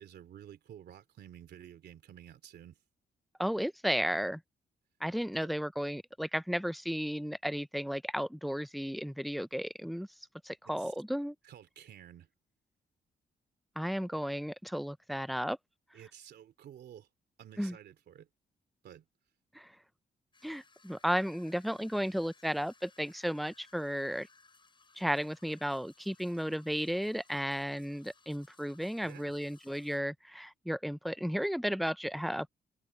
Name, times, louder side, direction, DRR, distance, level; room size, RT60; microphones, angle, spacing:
voice 1, 0.0-2.8 5.4-5.5 10.6-10.9 11.4-12.3 15.9-17.1 17.4-18.3 18.8-19.1 29.0-29.3, right 10 dB, 90° right, 2.9 m, -52 dB
voice 2, 3.4-4.4 5.0-10.1 10.4-11.4 13.8-15.6 17.6-17.8 19.5-19.7 20.4-24.3 25.0-32.5, equal, ahead, 0.4 m, -34 dB
sound 1, 20.3-30.0, left 4 dB, 30° left, 6.5 m, -63 dB
cardioid pair, 110°, 17 cm